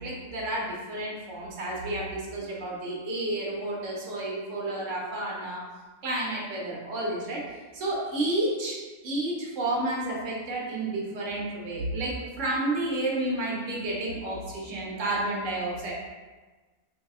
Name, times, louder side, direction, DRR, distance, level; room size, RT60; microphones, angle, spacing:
voice 1, 0.0-5.6 6.0-15.9, right 1 dB, 60° right, -3 dB, 1.1 m, -31 dB
3.8 x 2.6 x 2.3 m, 1.3 s
omnidirectional pair, 1.6 m